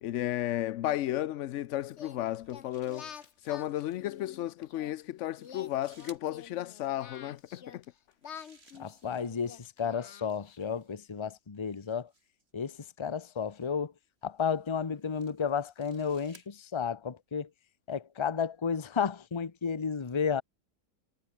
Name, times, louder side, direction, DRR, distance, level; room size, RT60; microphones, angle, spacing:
voice 1, 0.0-3.1 3.4-7.8, left 13 dB, 75° left, 0.7 m, -33 dB
Singing, 1.9-4.9 5.4-7.9 8.2-10.8, left 8 dB, 45° left, 1.2 m, -49 dB
sound 1, 2.2-4.2 5.1-6.3 7.9-9.5 10.4-12.5 13.4-13.7 14.5-16.5, right 2 dB, 35° right, 3.8 m, -61 dB
voice 2, 8.8-12.1 12.5-13.9 14.2-17.5 17.9-20.4, left 6 dB, 25° left, 0.8 m, -32 dB
omnidirectional pair, 1.8 m